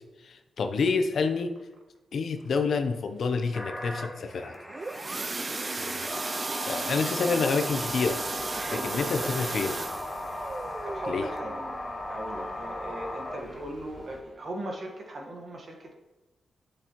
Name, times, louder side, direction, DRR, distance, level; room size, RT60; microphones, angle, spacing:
voice 1, 0.2-1.5 2.1-4.6 5.8-6.1 6.7-8.2 8.7-9.8 11.1-11.2, left 4 dB, 70° left, 7 dB, 0.6 m, -28 dB
sound 1, 3.5-13.6, left 1 dB, ahead, 1.2 m, -37 dB
sound 2, 4.5-13.1 13.6-13.8 14.1-14.2 14.7-14.8, right 3 dB, 35° right, 0.3 m, -36 dB
Gull seagull, 7.7-14.2, left 2 dB, 45° left, 1.3 m, -50 dB
voice 2, 8.6-9.6 10.8-15.9, right 1 dB, 50° right, 2 dB, 1.4 m, -39 dB
8.4 x 6.6 x 3.0 m, 1.1 s
cardioid pair, 95°, 0 cm